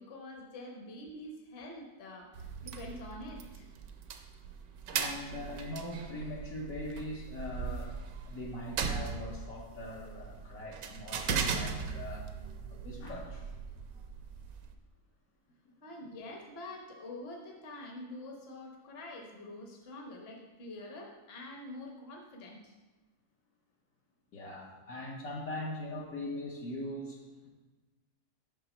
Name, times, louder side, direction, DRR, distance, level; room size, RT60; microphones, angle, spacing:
voice 1, 0.0-3.7 15.8-22.7, left 1 dB, 45° left, 0 dB, 1.2 m, -46 dB
sound 1, 2.3-14.7, right 6 dB, 70° right, 1.1 m, -39 dB
voice 2, 4.9-8.0 8.3-12.3 12.7-13.5 15.7-15.8 24.3-27.5, left 1 dB, 65° left, -2 dB, 1.3 m, -41 dB
5.9 x 5.9 x 4.3 m, 1.2 s
omnidirectional pair, 1.7 m